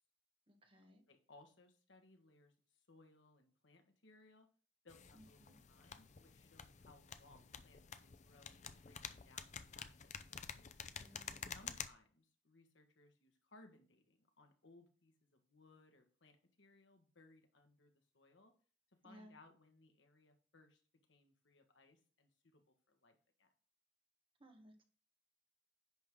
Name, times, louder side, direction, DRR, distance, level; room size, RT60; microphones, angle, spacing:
voice 1, 0.5-1.0 5.1-5.5 11.0-11.6 19.0-19.3 24.4-24.8, equal, 30° right, 4 dB, 1.5 m, -61 dB
voice 2, 1.1-4.5 4.8-10.1 11.1-11.2 11.5-18.5 19.0-20.8 21.1-23.5, left 2 dB, 75° left, 5 dB, 1.5 m, -66 dB
sound 1, 4.9-11.9, left 7 dB, 40° left, 0.6 m, -50 dB
10.5 x 3.7 x 6.2 m, 0.42 s
head